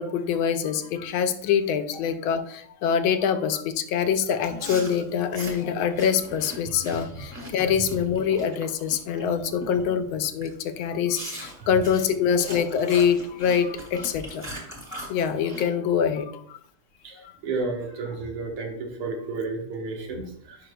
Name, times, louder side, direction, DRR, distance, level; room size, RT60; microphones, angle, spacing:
voice 1, 0.0-14.5 15.1-16.6 17.2-17.3, left 7 dB, 80° left, 9 dB, 1.3 m, -25 dB
Chewing mastication, 4.4-9.3 9.6-9.9 10.4-10.5 11.1-15.6, equal, 20° right, 1.4 m, -40 dB
voice 2, 17.4-20.6, right 3 dB, 85° right, 1 dB, 2.2 m, -32 dB
9.9 x 5.3 x 2.3 m, 0.67 s
omnidirectional pair, 2.3 m